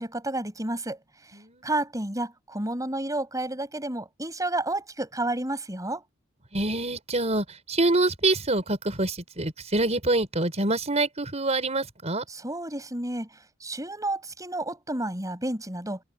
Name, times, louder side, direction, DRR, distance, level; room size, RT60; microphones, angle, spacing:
voice 1, 0.0-1.4 1.6-6.0 12.3-16.0, right 2 dB, 20° right, 7.5 m, -31 dB
voice 2, 6.5-12.2, right 2 dB, 35° right, 5.4 m, -26 dB
open air
head